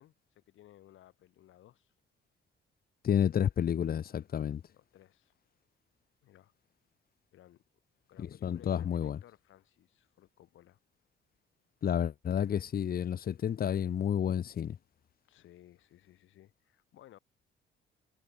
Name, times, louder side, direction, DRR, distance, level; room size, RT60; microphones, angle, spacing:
voice 1, 0.0-1.9 4.7-5.3 6.2-6.5 7.3-7.6 8.1-10.8 15.3-17.2, left 13 dB, 80° left, 3.4 m, -59 dB
voice 2, 3.0-4.6 8.2-9.2 11.8-14.8, left 9 dB, 50° left, 0.9 m, -30 dB
cardioid pair, 90°, 20 cm